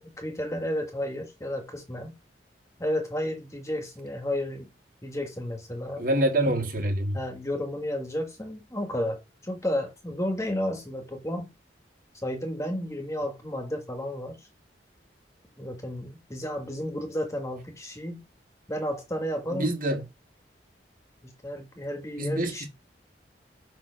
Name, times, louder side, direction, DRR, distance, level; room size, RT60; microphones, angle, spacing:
voice 1, 0.0-2.1 2.8-4.7 5.0-6.1 7.1-11.5 12.2-14.5 15.6-18.2 18.7-19.7 21.2-22.7, left 1 dB, 15° left, 1.5 m, -32 dB
voice 2, 6.0-7.2 19.5-20.0 22.2-22.7, right 1 dB, 50° right, 1.8 m, -26 dB
5.8 x 4.3 x 5.7 m
head